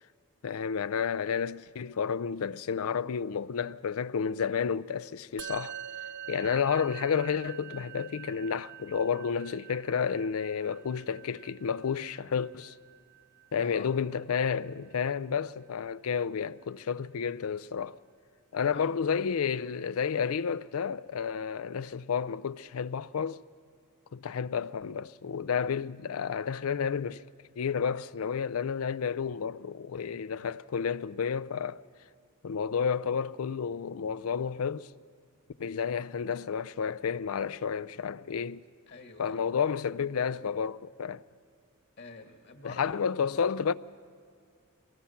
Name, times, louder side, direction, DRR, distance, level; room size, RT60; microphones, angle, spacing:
voice 1, 0.4-5.7 6.3-12.7 13.5-18.0 18.5-23.4 24.1-27.2 27.6-31.8 32.4-34.9 35.6-38.6 39.2-41.2 42.6-43.7, left 6 dB, 80° left, 0.5 m, -31 dB
Musical instrument, 5.4-14.9, right 10 dB, 55° right, 0.6 m, -46 dB
voice 2, 29.9-30.4 38.9-39.5 42.0-43.0, left 3 dB, 55° left, 1.9 m, -46 dB
23.5 x 19.5 x 5.8 m
head